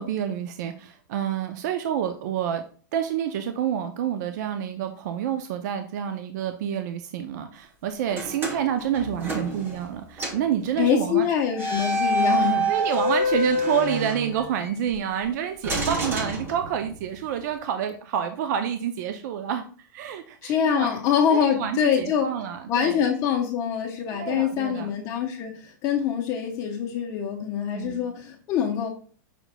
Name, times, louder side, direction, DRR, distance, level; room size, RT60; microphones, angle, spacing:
voice 1, 0.0-2.6 2.9-11.3 12.7-21.0 21.3-23.0 24.1-24.9 27.7-28.0, right 9 dB, 60° right, 7 dB, 0.5 m, -28 dB
sound 1, 8.1-9.9 10.2-10.5 11.5-14.8 15.6-17.1, equal, 20° right, 0.9 m, -27 dB
voice 2, 10.8-12.7 20.4-22.3 22.7-28.9, left 8 dB, 30° left, 1 dB, 0.7 m, -24 dB
5.8 x 3.9 x 2.2 m, 0.43 s
hypercardioid pair, 140°, 11 cm